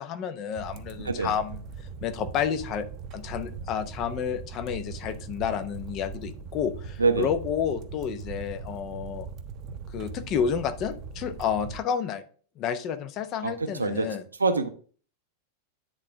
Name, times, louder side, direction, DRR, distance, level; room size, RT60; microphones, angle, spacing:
voice 1, 0.0-1.6 2.0-2.8 3.1-9.3 9.9-12.2 12.6-14.2, left 8 dB, 35° left, 11 dB, 0.7 m, -30 dB
sound 1, 0.6-11.8, right 5 dB, 35° right, 0.7 m, -40 dB
voice 2, 13.4-14.1 14.4-14.7, right 4 dB, 75° right, 8 dB, 0.7 m, -25 dB
9.8 x 3.8 x 3.4 m, 0.42 s
figure-of-eight pair, 90°, 0 cm